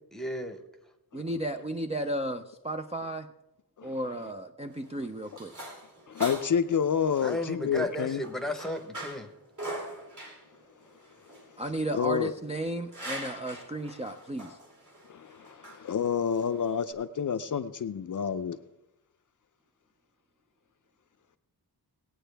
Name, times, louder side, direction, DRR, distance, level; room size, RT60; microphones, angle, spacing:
voice 1, 0.1-0.6 7.2-9.3, left 1 dB, ahead, 6 dB, 1.0 m, -34 dB
voice 2, 1.1-3.3 3.8-5.5 11.6-14.6, right 1 dB, 15° right, 6 dB, 0.4 m, -34 dB
sound 1, 4.6-16.9, right 1 dB, 50° right, 3.2 m, -44 dB
voice 3, 6.1-8.2 11.9-12.3 15.1-18.6, left 7 dB, 50° left, 9 dB, 0.5 m, -29 dB
18.5 x 9.0 x 3.4 m, 0.90 s
wide cardioid pair, 150°, 40 cm